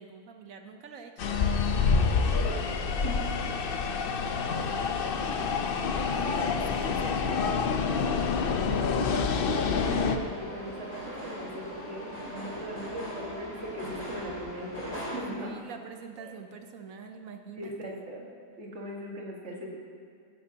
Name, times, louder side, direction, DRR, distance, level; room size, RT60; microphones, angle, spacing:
voice 1, 0.0-1.4 3.3-3.7 3.9-8.0 15.4-18.0, right 5 dB, 65° right, 6 dB, 1.0 m, -46 dB
sound 1, 1.2-10.2, left 5 dB, 65° left, 0.5 m, -27 dB
voice 2, 2.1-3.4 8.6-9.4 9.8-15.6 16.2-16.3 17.5-18.3 18.6-19.8, right 1 dB, 50° right, -2 dB, 1.8 m, -39 dB
sound 2, 9.4-15.2, left 1 dB, 25° left, 2.4 m, -40 dB
15.5 x 10.5 x 2.8 m, 2.3 s
omnidirectional pair, 1.7 m